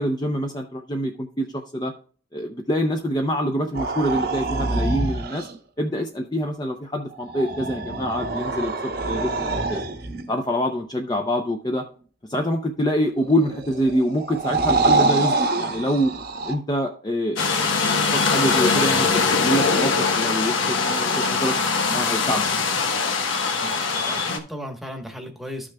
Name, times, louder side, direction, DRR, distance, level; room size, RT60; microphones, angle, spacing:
voice 1, 0.0-1.9 2.3-5.5 5.8-9.8 10.3-11.8 12.3-16.1 16.5-17.4 17.8-19.1 19.4-21.6 21.9-22.5, equal, 20° left, 3 dB, 0.5 m, -25 dB
sound 1, 3.7-5.5 7.1-10.3 13.2-16.5, right 3 dB, 50° right, 0.9 m, -25 dB
sound 2, 17.4-24.4, left 4 dB, 75° left, 1.2 m, -22 dB
voice 2, 23.6-25.7, equal, ahead, 3 dB, 1.1 m, -36 dB
13.0 x 6.1 x 2.2 m, 0.43 s
head